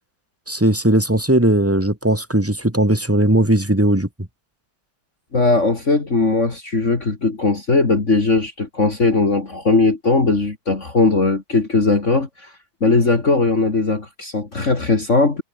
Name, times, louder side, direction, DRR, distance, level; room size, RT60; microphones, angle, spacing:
voice 1, 0.5-4.1, right 1 dB, 5° right, 2.6 m, -17 dB
voice 2, 5.3-12.5 12.8-15.4, left 3 dB, 35° left, 2.8 m, -18 dB
omnidirectional pair, 2.3 m